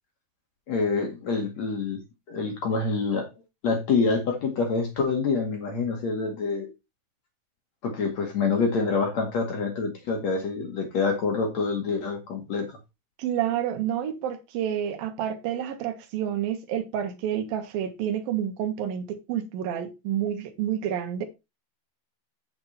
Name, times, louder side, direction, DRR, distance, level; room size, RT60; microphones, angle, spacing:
voice 1, 0.7-2.0 2.3-3.3 3.6-6.7 7.8-12.7, left 4 dB, 50° left, 2.8 m, -26 dB
voice 2, 13.2-21.3, right 10 dB, 65° right, 3.0 m, -29 dB
8.6 x 7.7 x 4.2 m
omnidirectional pair, 4.9 m